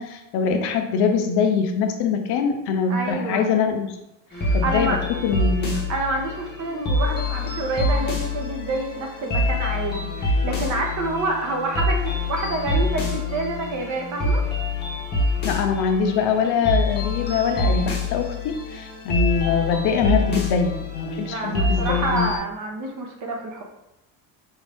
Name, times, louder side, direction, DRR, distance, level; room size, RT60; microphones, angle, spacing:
voice 1, 0.0-4.0 4.5-5.8 15.4-22.3, left 6 dB, 60° left, 5 dB, 0.6 m, -23 dB
voice 2, 2.9-3.5 4.3-5.0 5.9-14.4 21.2-23.6, right 2 dB, 40° right, 2 dB, 0.8 m, -28 dB
sound 1, 4.3-22.4, left 2 dB, 20° left, 0.8 m, -26 dB
5.6 x 2.6 x 3.4 m, 0.92 s
cardioid pair, 165°, 46 cm